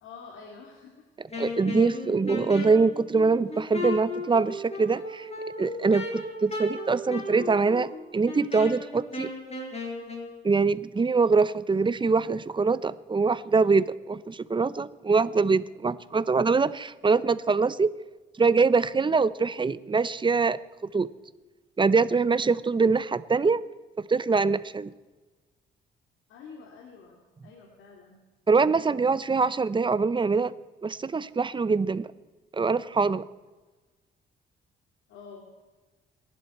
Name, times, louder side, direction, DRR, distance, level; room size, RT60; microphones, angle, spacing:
voice 1, 0.0-1.0 26.3-28.2 35.1-35.5, left 5 dB, 90° left, 0 dB, 2.6 m, -47 dB
Wind instrument woodwind instrument, 1.3-10.3, left 2 dB, 30° left, 5.3 m, -35 dB
voice 2, 1.4-5.3 5.6-9.3 10.4-17.9 18.4-20.6 20.9-21.1 21.8-23.6 24.1-24.9 28.5-30.5 30.8-32.1 32.5-33.2, right 4 dB, 25° right, 16 dB, 0.8 m, -24 dB
28.0 x 11.5 x 4.4 m, 1.2 s
cardioid pair, 90°, 20 cm